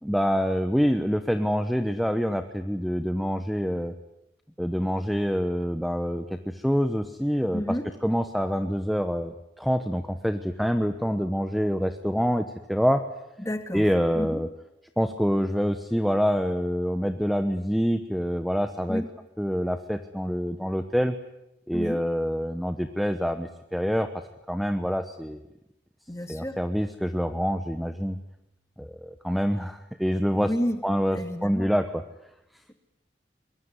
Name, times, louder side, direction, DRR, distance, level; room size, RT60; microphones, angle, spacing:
voice 1, 0.0-3.9 4.6-7.6 8.0-13.0 13.7-14.5 15.0-19.0 19.4-21.1 21.7-24.1 24.5-25.4 26.3-28.2 28.8-30.5 30.8-31.9, equal, ahead, 8 dB, 0.9 m, -26 dB
voice 2, 7.5-7.9 13.4-13.9 14.1-14.4 18.9-19.1 21.7-22.0 26.1-26.6 30.3-30.8 31.1-31.7, equal, 15° left, 7 dB, 2.2 m, -30 dB
24.0 x 21.5 x 9.7 m, 0.88 s
head